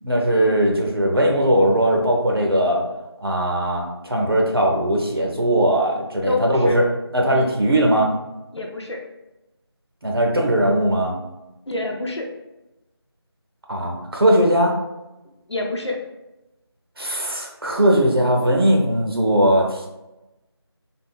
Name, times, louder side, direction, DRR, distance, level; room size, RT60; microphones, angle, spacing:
voice 1, 0.0-2.8 3.2-8.1 10.0-11.2 13.7-14.8 17.0-19.9, right 1 dB, 60° right, 0 dB, 0.7 m, -19 dB
voice 2, 6.3-6.8 7.3-7.5 8.5-9.0 11.7-12.3 15.5-16.0, left 2 dB, 85° left, 1 dB, 0.7 m, -27 dB
3.5 x 2.3 x 2.3 m, 0.99 s
figure-of-eight pair, 170°, 14 cm